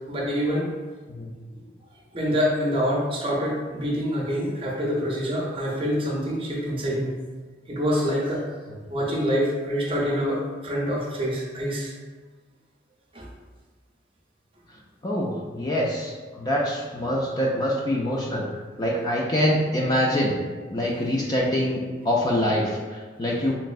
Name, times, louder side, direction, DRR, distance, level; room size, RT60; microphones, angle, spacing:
voice 1, 0.1-0.8 2.1-7.1 7.7-8.5 8.9-11.9 13.1-13.3, equal, 30° right, -3 dB, 0.6 m, -26 dB
voice 2, 14.7-20.4 20.7-23.5, equal, 20° left, -3 dB, 0.3 m, -25 dB
3.4 x 3.0 x 2.4 m, 1.4 s
head